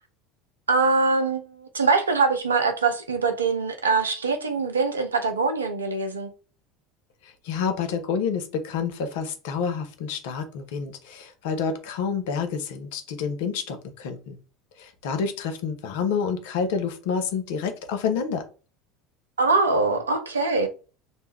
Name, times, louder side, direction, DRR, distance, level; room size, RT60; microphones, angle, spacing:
voice 1, 0.7-6.3 19.4-20.7, right 4 dB, 85° right, 0.5 m, -23 dB
voice 2, 7.2-14.4 14.8-18.4, left 6 dB, 65° left, 0.6 m, -28 dB
2.5 x 2.2 x 3.3 m
hypercardioid pair, 75°, 0 cm